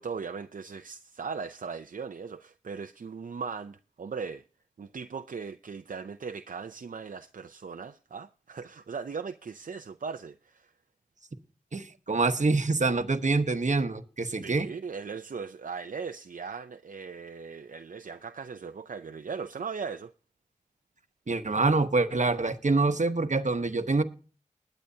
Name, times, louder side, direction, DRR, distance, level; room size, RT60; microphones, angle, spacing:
voice 1, 0.0-4.4 4.8-10.7 14.3-20.1, right 5 dB, 80° right, 0.5 m, -38 dB
voice 2, 11.7-14.7 21.3-24.0, right 3 dB, 65° right, 1.0 m, -26 dB
20.5 x 9.1 x 2.7 m
wide cardioid pair, 50°, 14 cm